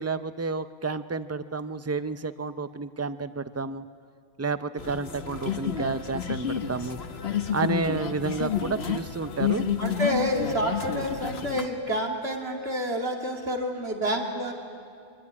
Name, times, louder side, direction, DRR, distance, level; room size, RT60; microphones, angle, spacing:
voice 1, 0.0-3.9 4.4-7.0 7.5-9.6, right 4 dB, 15° right, 12 dB, 0.6 m, -30 dB
sound 1, 4.8-11.7, left 8 dB, 75° left, 1.4 m, -30 dB
voice 2, 9.8-14.5, equal, 75° right, 2 dB, 3.1 m, -28 dB
25.5 x 23.5 x 9.7 m, 2.3 s
omnidirectional pair, 1.1 m